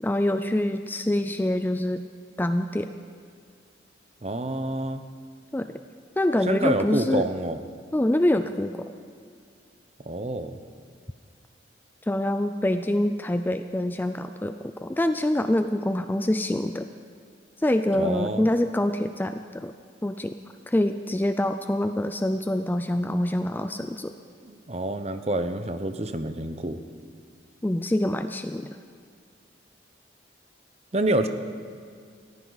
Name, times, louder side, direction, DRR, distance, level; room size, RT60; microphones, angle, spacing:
voice 1, 0.0-2.0 2.4-2.9 5.5-5.7 6.2-7.3 7.9-8.9 12.0-16.9 17.6-19.7 20.0-20.4 20.7-24.1 27.6-28.8, left 1 dB, 10° left, 9 dB, 0.3 m, -25 dB
voice 2, 4.2-5.0 6.5-7.6 10.1-10.6 18.0-18.4 24.4-26.8 30.9-31.3, right 1 dB, 35° right, 9 dB, 0.7 m, -27 dB
20.5 x 15.0 x 4.0 m, 2.2 s
head